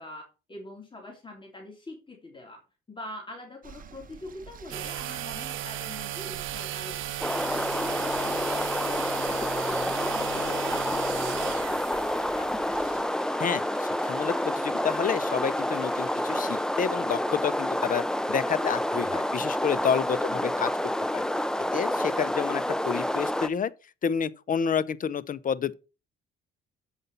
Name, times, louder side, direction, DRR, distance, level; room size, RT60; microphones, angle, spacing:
voice 1, 0.0-7.7 8.2-12.8 20.2-20.5, left 2 dB, 25° left, 3.1 m, -44 dB
sound 1, 3.6-13.0, right 6 dB, 45° right, 1.1 m, -50 dB
sound 2, 4.7-16.7, right 13 dB, 80° right, 0.8 m, -37 dB
sound 3, 7.2-23.5, left 1 dB, 5° left, 0.6 m, -28 dB
voice 2, 13.4-20.7 21.1-21.3 21.7-23.7 24.0-25.7, left 7 dB, 45° left, 0.7 m, -29 dB
8.1 x 5.5 x 5.4 m
cardioid pair, 90°, 20 cm